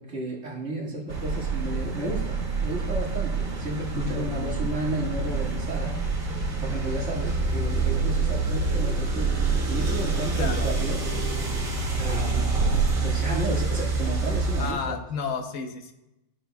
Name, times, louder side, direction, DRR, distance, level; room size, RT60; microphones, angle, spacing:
voice 1, 0.0-6.0 6.6-9.4 9.7-11.0 11.9-12.7 13.0-15.0, right 2 dB, 60° right, -5 dB, 2.3 m, -33 dB
sound 1, 1.1-14.7, right 3 dB, 85° right, 1.9 m, -26 dB
voice 2, 3.9-4.7 10.4-10.7 14.6-15.9, left 6 dB, 80° left, 5 dB, 1.3 m, -32 dB
14.5 x 6.2 x 2.3 m, 0.92 s
omnidirectional pair, 1.4 m